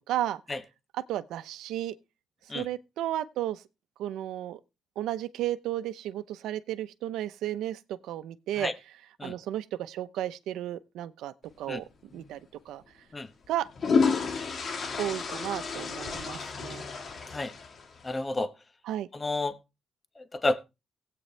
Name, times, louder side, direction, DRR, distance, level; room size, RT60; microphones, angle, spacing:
voice 1, 0.1-0.4 0.9-1.9 2.5-3.6 4.0-4.6 5.0-8.7 9.2-12.4 12.7-12.8 13.5-13.7 15.0-16.8 18.9-19.1, right 12 dB, 85° right, 0.7 m, -33 dB
sound 1, 12.1-12.3 13.4-18.1, left 5 dB, 50° left, 1.5 m, -30 dB
voice 2, 18.0-18.5 19.1-19.6 20.2-20.6, left 2 dB, 25° left, 1.0 m, -30 dB
16.0 x 8.6 x 3.3 m
cardioid pair, 90°, 0 cm